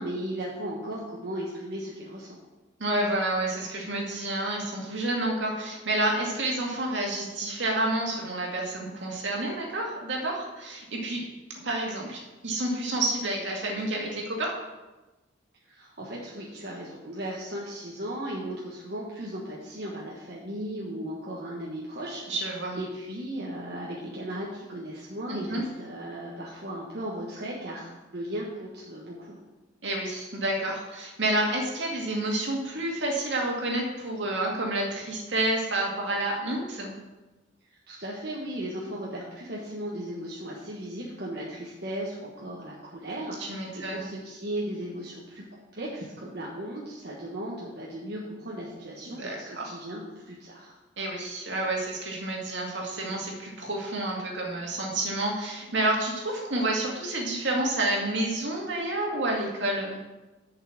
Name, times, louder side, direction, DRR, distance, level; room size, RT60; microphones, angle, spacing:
voice 1, 0.0-2.4 15.6-22.2 22.7-29.4 37.7-45.4 45.7-50.8, right 1 dB, 60° right, -5 dB, 1.4 m, -36 dB
voice 2, 2.8-11.2 11.6-14.5 22.3-22.8 25.3-25.6 29.8-37.0 43.4-44.1 49.1-49.7 51.0-60.0, right 1 dB, 75° right, -1 dB, 2.2 m, -29 dB
7.0 x 5.7 x 7.1 m, 1.1 s
head